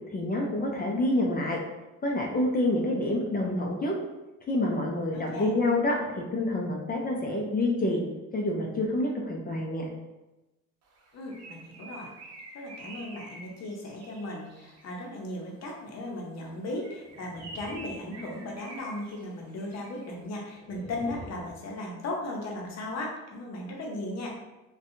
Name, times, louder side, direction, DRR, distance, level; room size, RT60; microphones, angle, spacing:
voice 1, 0.1-1.6 2.0-3.9 4.5-8.0 8.3-9.9, left 1 dB, 30° left, -1 dB, 0.5 m, -27 dB
voice 2, 5.1-5.5 11.1-12.1 12.5-24.4, left 1 dB, 60° left, -1 dB, 0.7 m, -37 dB
Bird, 10.9-15.0 16.6-20.1, right 2 dB, 60° right, 0.7 m, -47 dB
sound 1, 17.0-18.7 20.5-21.5, equal, 10° left, 0.9 m, -47 dB
2.6 x 2.2 x 2.5 m, 1.0 s
cardioid pair, 90°, 30 cm